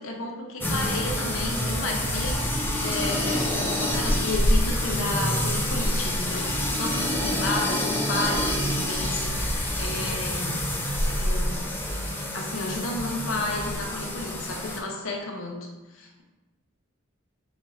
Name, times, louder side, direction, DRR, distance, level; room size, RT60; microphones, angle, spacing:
voice 1, 0.0-10.7 11.2-11.7 12.3-15.7 15.9-16.2, left 2 dB, 80° left, 1 dB, 0.7 m, -32 dB
sound 1, 0.6-14.8, left 1 dB, 10° left, 0.4 m, -27 dB
4.2 x 2.4 x 3.1 m, 1.1 s
head